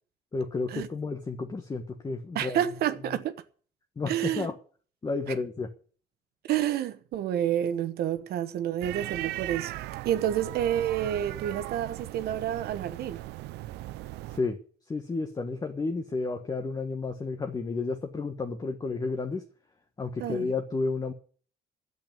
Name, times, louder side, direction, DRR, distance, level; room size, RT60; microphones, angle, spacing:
voice 1, 0.3-2.6 4.0-4.6 5.0-5.7 14.3-14.6 14.9-19.4 20.0-21.1, left 3 dB, 25° left, 1.4 m, -31 dB
voice 2, 2.3-3.3 4.1-4.5 6.5-9.7 10.0-13.2 20.2-20.5, right 11 dB, 70° right, 1.1 m, -29 dB
sound 1, 8.8-14.4, right 16 dB, 90° right, 0.7 m, -38 dB
10.0 x 8.2 x 9.1 m
cardioid pair, 110°, 17 cm